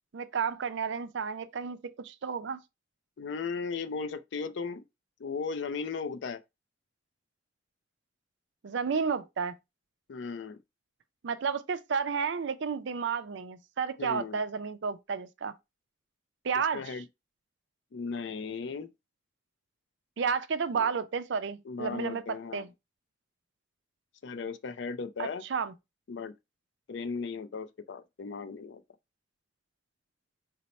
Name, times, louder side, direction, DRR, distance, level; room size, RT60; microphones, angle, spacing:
voice 1, 0.1-2.6 8.6-9.6 11.2-15.5 16.4-16.9 20.2-22.2 22.5-22.7 25.2-25.7, right 6 dB, 65° right, 0.4 m, -32 dB
voice 2, 3.2-4.8 5.2-6.4 10.1-10.6 14.0-14.4 16.7-17.0 17.9-18.9 20.7-20.9 21.7-22.7 24.2-25.4 26.1-26.3 26.9-28.8, left 5 dB, 65° left, 0.4 m, -36 dB
4.2 x 2.0 x 4.0 m
head